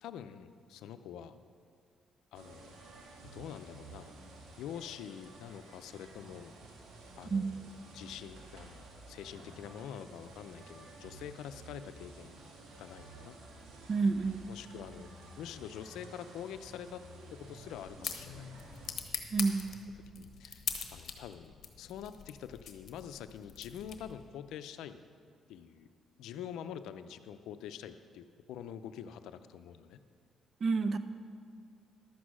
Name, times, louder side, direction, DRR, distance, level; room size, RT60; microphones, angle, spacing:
voice 1, 0.0-1.4 2.3-2.7 3.3-4.1 4.6-6.5 7.2-12.5 12.8-13.4 14.5-15.1 15.4-17.0 17.3-18.5 20.2-20.7 20.9-25.0 25.5-25.9 26.2-30.0, left 9 dB, 85° left, 11 dB, 0.5 m, -46 dB
sound 1, 2.3-19.0, right 2 dB, 75° right, 1.9 m, -52 dB
voice 2, 13.9-14.4 19.3-19.6 30.6-31.0, right 4 dB, 45° right, 11 dB, 0.7 m, -28 dB
sound 2, 17.4-24.3, left 7 dB, 55° left, 1.2 m, -43 dB
12.0 x 8.3 x 6.2 m, 2.1 s
cardioid pair, 90°, 0 cm